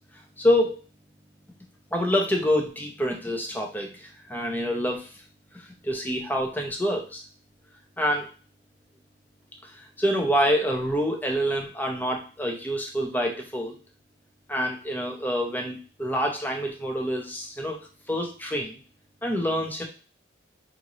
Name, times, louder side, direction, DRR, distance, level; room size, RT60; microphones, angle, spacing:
voice 1, 0.4-0.8 1.9-5.1 5.5-7.2 8.0-8.3 9.6-13.8 14.5-17.8 18.1-18.8 19.2-19.9, equal, 10° left, 1 dB, 0.6 m, -27 dB
5.1 x 2.6 x 3.0 m, 0.36 s
head